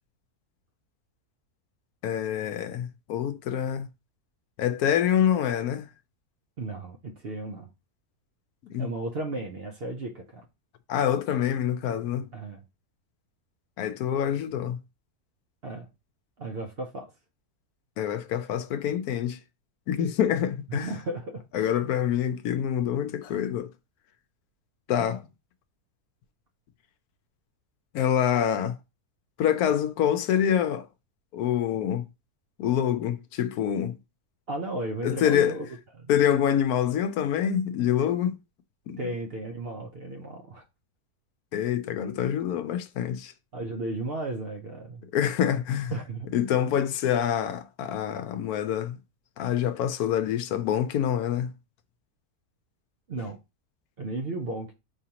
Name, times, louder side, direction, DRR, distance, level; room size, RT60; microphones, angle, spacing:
voice 1, 2.0-3.9 4.6-5.9 8.7-8.9 10.9-12.3 13.8-14.8 18.0-19.4 19.9-20.9 21.5-23.7 24.9-25.2 27.9-28.8 29.4-30.9 31.3-32.1 32.6-34.0 35.0-35.5 36.1-38.3 38.9-39.0 41.5-43.3 45.1-45.9 46.3-49.0 49.4-51.5, left 9 dB, 80° left, 1.1 m, -26 dB
voice 2, 6.6-7.7 8.8-10.5 12.3-12.6 15.6-15.9 16.4-17.1 20.7-21.4 34.5-35.7 35.9-36.1 39.0-40.6 43.5-45.1 45.9-46.3 53.1-53.4 54.0-54.7, right 2 dB, 55° right, 0.8 m, -34 dB
4.9 x 3.1 x 2.8 m
omnidirectional pair, 1.6 m